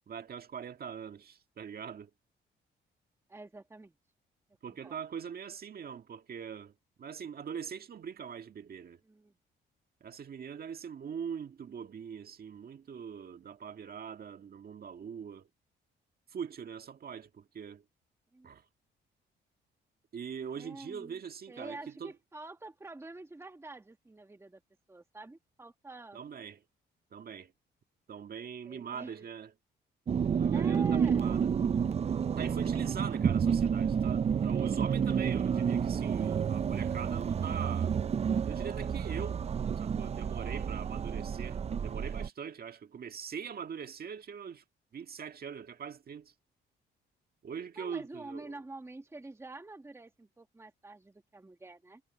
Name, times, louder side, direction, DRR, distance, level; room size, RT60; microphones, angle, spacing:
voice 1, 0.1-2.1 4.6-9.0 10.0-15.5 16.3-17.8 18.4-18.7 20.1-22.1 26.1-26.6 27.1-27.5 28.1-29.5 30.3-31.5 32.4-37.9 38.5-39.4 39.8-44.6 44.9-46.3 47.4-48.6, right 7 dB, 50° right, 1.8 m, -42 dB
voice 2, 3.3-3.9 4.7-4.9 9.0-9.3 18.3-18.5 20.5-21.2 21.5-24.6 24.9-26.2 28.6-29.2 30.5-31.6 47.8-52.0, right 2 dB, 15° right, 1.4 m, -47 dB
sound 1, 30.1-42.3, right 7 dB, 30° right, 0.4 m, -30 dB
cardioid pair, 90°, 20 cm